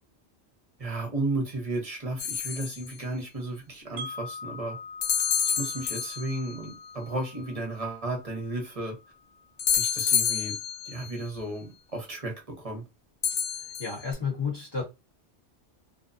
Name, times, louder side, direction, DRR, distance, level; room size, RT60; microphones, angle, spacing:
voice 1, 0.8-4.8 5.6-8.9 9.7-10.5 10.8-12.8, right 2 dB, 35° right, 0.9 m, -33 dB
sound 1, 2.2-2.9 5.0-6.5 9.6-11.1 13.2-14.1, left 8 dB, 70° left, 0.8 m, -28 dB
Wind chime, 4.0-9.9, left 3 dB, 65° right, 0.7 m, -44 dB
voice 2, 13.8-14.8, left 5 dB, 25° left, 1.1 m, -31 dB
2.7 x 2.1 x 2.5 m
omnidirectional pair, 1.2 m